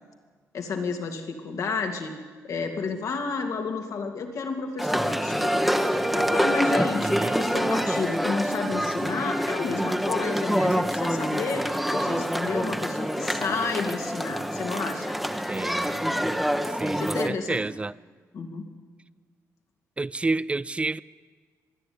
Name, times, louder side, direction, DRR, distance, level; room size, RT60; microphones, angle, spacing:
voice 1, 0.5-2.1 2.4-5.7 6.1-15.1 16.9-17.7 18.3-18.7, left 4 dB, 65° left, 2.8 m, -31 dB
sound 1, 4.8-17.3, equal, ahead, 1.2 m, -26 dB
voice 2, 7.0-7.4 15.5-15.9 16.8-17.9 20.0-21.0, right 3 dB, 20° right, 0.5 m, -29 dB
25.0 x 10.5 x 9.7 m
cardioid pair, 85°, 6 cm